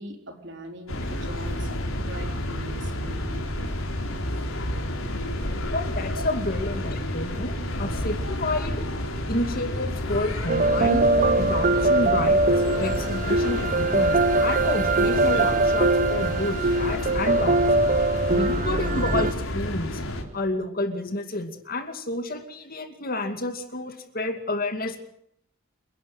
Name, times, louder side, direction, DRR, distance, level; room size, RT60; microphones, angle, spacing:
voice 1, 0.0-3.7 6.2-6.3, right 1 dB, 55° right, 4 dB, 4.1 m, -41 dB
sound 1, 0.9-20.2, left 1 dB, 75° left, 3.8 m, -30 dB
voice 2, 5.7-8.9 9.3-12.5 12.8-17.6 18.3-20.0 20.3-25.0, left 2 dB, 45° left, 7 dB, 2.4 m, -30 dB
sound 2, 10.5-19.3, right 2 dB, 40° right, 0.7 m, -22 dB
28.5 x 11.5 x 9.2 m, 0.72 s
head